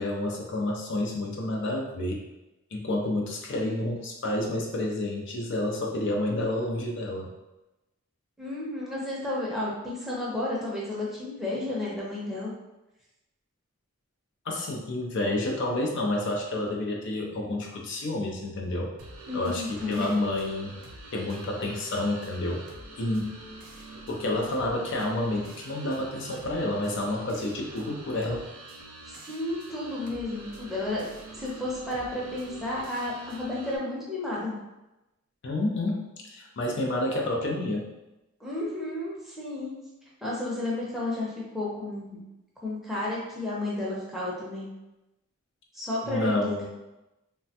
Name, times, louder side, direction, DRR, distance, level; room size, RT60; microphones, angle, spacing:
voice 1, 0.0-2.2 2.7-7.3 14.5-18.9 19.3-20.7 21.1-22.7 23.0-23.4 24.1-28.4 35.4-37.9 46.0-46.7, left 1 dB, 55° left, 0 dB, 0.4 m, -29 dB
voice 2, 8.4-12.5 19.3-20.3 29.1-31.0 31.3-34.5 38.4-39.8 40.2-42.2 42.6-44.7 45.7-46.7, left 2 dB, ahead, -6 dB, 0.6 m, -32 dB
sound 1, 19.0-33.8, right 2 dB, 90° right, 0.6 m, -46 dB
3.1 x 2.1 x 2.7 m, 0.98 s
head